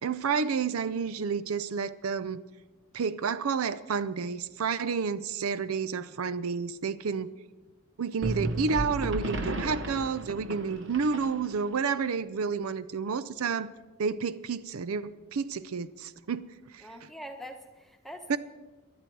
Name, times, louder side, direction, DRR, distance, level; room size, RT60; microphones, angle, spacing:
voice 1, 0.0-2.4 2.9-7.3 8.0-13.7 14.0-16.9 18.3-18.4, right 5 dB, 85° right, 15 dB, 0.5 m, -30 dB
sound 1, 8.2-11.7, right 1 dB, 60° right, 1.0 m, -34 dB
voice 2, 16.8-18.4, equal, ahead, 4 dB, 1.0 m, -44 dB
19.0 x 11.5 x 4.6 m, 1.2 s
head